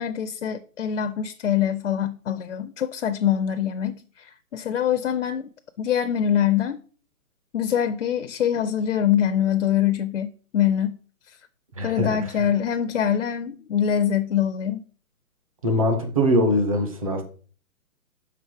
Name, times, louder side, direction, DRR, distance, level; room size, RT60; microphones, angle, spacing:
voice 1, 0.0-4.0 4.5-5.5 5.8-6.8 7.5-11.0 11.8-14.8, left 9 dB, 55° left, 0.5 m, -24 dB
voice 2, 11.8-12.3 15.6-17.2, equal, 25° right, 0.7 m, -22 dB
5.8 x 3.9 x 4.7 m
hypercardioid pair, 165°, 45 cm